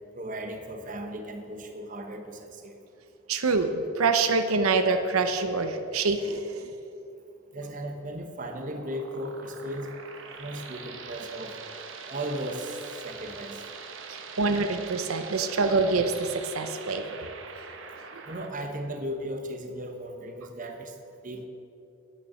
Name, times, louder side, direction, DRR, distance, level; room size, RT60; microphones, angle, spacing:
voice 1, 0.2-2.8 7.5-10.0 10.4-11.5 12.1-13.6 18.3-20.9 21.2-21.5, right 1 dB, 40° right, 5 dB, 1.0 m, -36 dB
voice 2, 3.3-6.7 14.1-17.3 18.1-18.2, right 4 dB, 90° right, 8 dB, 0.7 m, -26 dB
sound 1, 8.4-18.5, right 5 dB, 65° right, 1.0 m, -43 dB
9.3 x 9.0 x 6.9 m, 2.7 s
head